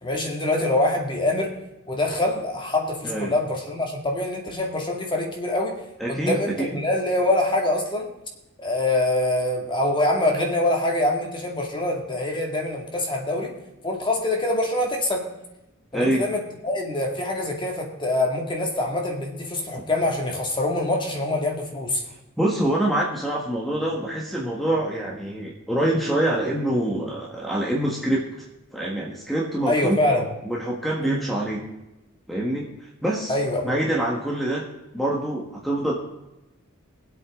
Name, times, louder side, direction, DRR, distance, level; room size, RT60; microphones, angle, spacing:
voice 1, 0.0-1.5 1.9-5.8 6.1-8.1 8.6-13.5 13.8-15.3 15.9-22.0 29.7-30.3 31.0-31.2 33.3-33.8, left 1 dB, 25° left, 1 dB, 2.2 m, -24 dB
voice 2, 6.0-6.8 15.9-16.3 19.7-19.8 22.4-28.3 28.7-30.0 30.4-31.6 32.3-33.3 33.6-34.7 34.9-35.9, right 1 dB, ahead, -3 dB, 1.5 m, -25 dB
20.5 x 8.1 x 3.8 m, 0.94 s
head